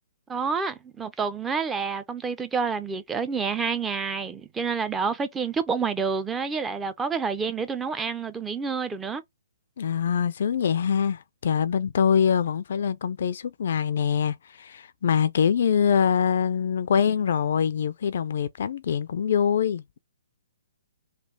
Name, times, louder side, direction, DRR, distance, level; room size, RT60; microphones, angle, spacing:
voice 1, 0.3-9.2, right 5 dB, 10° right, 0.5 m, -28 dB
voice 2, 9.8-19.8, left 7 dB, 60° left, 0.4 m, -24 dB
3.3 x 2.4 x 3.9 m
hypercardioid pair, 135°, 0 cm